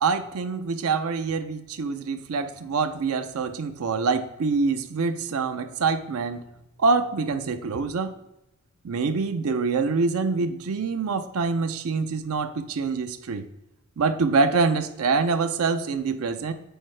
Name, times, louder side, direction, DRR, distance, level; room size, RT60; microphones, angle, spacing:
voice 1, 0.0-6.4 6.8-8.1 8.8-13.4 14.0-16.5, right 4 dB, 75° right, 10 dB, 0.5 m, -25 dB
7.8 x 4.6 x 3.2 m, 0.88 s
head